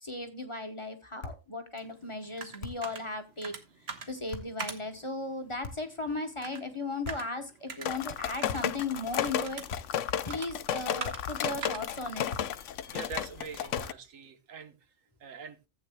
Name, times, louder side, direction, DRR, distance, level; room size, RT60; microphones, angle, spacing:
voice 1, 0.0-3.5 4.1-9.6 10.3-12.3, left 2 dB, 25° left, 1.1 m, -36 dB
sound 1, 1.2-1.5 2.6-3.0 4.3-4.6 5.6-6.0 7.0-7.4 8.5-8.8 9.7-10.1 11.0-11.4 12.3-12.7 13.7-14.1, left 3 dB, 50° left, 1.8 m, -43 dB
sound 2, 1.8-13.4, right 5 dB, 55° right, 1.5 m, -46 dB
sound 3, 7.9-13.9, left 9 dB, 70° left, 0.9 m, -33 dB
voice 2, 12.9-14.8 15.2-15.6, right 5 dB, 80° right, 1.4 m, -43 dB
15.0 x 8.5 x 2.2 m
omnidirectional pair, 1.4 m